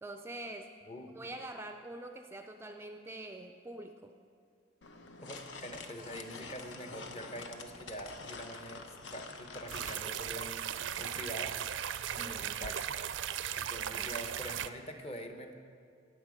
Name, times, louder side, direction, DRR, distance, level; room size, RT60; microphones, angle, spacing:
voice 1, 0.0-0.7 1.1-4.1 12.2-12.4 13.9-14.2, right 1 dB, 15° right, 6 dB, 0.4 m, -45 dB
voice 2, 0.9-1.2 5.2-10.7 11.0-11.6 12.2-13.0 13.5-15.5, equal, 35° left, 5 dB, 0.9 m, -45 dB
sound 1, 4.8-10.0, left 4 dB, 80° left, 0.9 m, -47 dB
sound 2, 5.3-12.6, equal, 55° left, 3.5 m, -68 dB
sound 3, 9.7-14.7, right 9 dB, 85° right, 0.4 m, -37 dB
17.5 x 6.9 x 5.1 m, 2.3 s
head